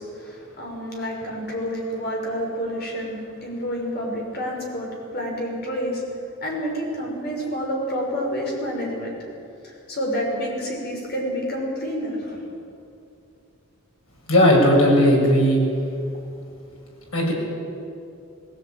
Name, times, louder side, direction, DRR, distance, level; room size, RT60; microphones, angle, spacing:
voice 1, 0.0-6.0 6.4-9.1 9.6-12.5, equal, 50° left, -1 dB, 5.9 m, -29 dB
voice 2, 14.3-15.6 17.1-17.3, equal, 85° left, -2 dB, 6.8 m, -16 dB
20.0 x 17.0 x 9.1 m, 2.6 s
head